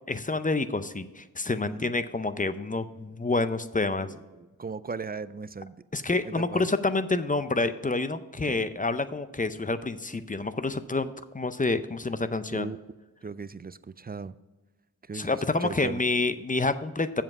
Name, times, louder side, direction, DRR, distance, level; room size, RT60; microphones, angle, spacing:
voice 1, 0.1-4.1 5.9-12.7 15.1-17.2, left 3 dB, 20° left, 11 dB, 0.5 m, -28 dB
voice 2, 1.6-1.9 3.9-4.3 4.6-5.8 6.2-6.7 8.4-8.6 12.5-12.8 13.2-14.3 15.1-16.0, right 4 dB, 25° right, 15 dB, 0.3 m, -37 dB
7.6 x 7.3 x 4.7 m, 1.1 s
wide cardioid pair, 50°, 37 cm